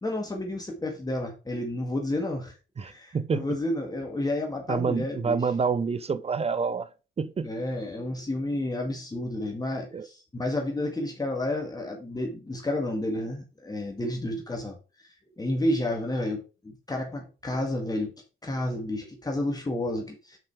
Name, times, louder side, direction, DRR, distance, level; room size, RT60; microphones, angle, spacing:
voice 1, 0.0-5.4 7.4-14.8 15.4-18.1 18.4-20.4, left 1 dB, 20° left, 1.7 m, -31 dB
voice 2, 2.8-3.5 4.7-6.9 7.2-7.5 9.9-10.1, right 5 dB, 30° right, 0.6 m, -27 dB
6.0 x 5.2 x 4.7 m
cardioid pair, 90°, 20 cm